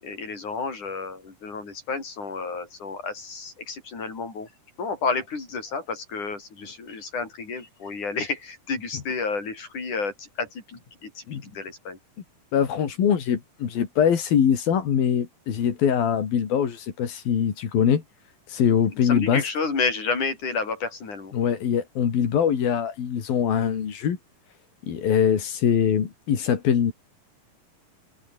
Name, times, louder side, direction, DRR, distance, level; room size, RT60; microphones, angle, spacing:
voice 1, 0.0-4.5 4.8-12.0 18.9-21.3, left 4 dB, 60° left, 8.0 m, -31 dB
voice 2, 12.5-18.0 18.5-19.4 21.3-24.2 24.9-26.9, left 8 dB, 90° left, 4.8 m, -23 dB
open air
omnidirectional pair, 4.0 m